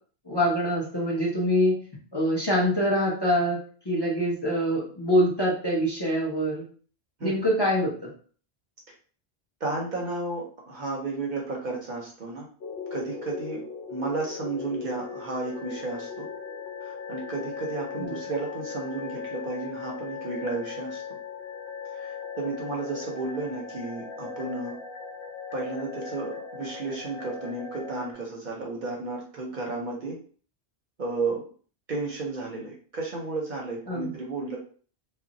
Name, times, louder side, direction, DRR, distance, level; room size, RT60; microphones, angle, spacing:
voice 1, 0.3-1.8 2.1-3.6 3.9-6.6 7.2-7.9 18.0-18.2 33.9-34.1, equal, 25° left, -4 dB, 0.7 m, -24 dB
voice 2, 9.6-12.5 12.9-13.6 13.9-16.3 16.8-21.0 21.9-24.7 25.5-30.2 31.0-31.4 31.9-34.6, right 3 dB, 55° right, -1 dB, 0.7 m, -33 dB
sound 1, 12.6-28.1, left 6 dB, 85° left, 0.9 m, -38 dB
2.4 x 2.1 x 3.9 m, 0.44 s
omnidirectional pair, 1.1 m